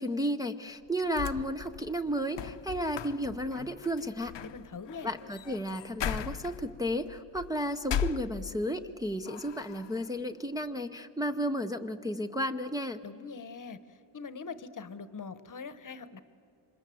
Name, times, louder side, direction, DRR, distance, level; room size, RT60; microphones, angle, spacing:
voice 1, 0.0-4.3 5.0-13.0, equal, 10° right, 4 dB, 0.6 m, -33 dB
sound 1, 0.9-8.8 9.2-10.0, left 9 dB, 65° left, 0.8 m, -38 dB
voice 2, 4.4-5.1 13.0-13.8 14.1-16.2, left 5 dB, 40° left, 13 dB, 1.0 m, -42 dB
28.0 x 25.5 x 7.7 m, 2.5 s
wide cardioid pair, 170°, 47 cm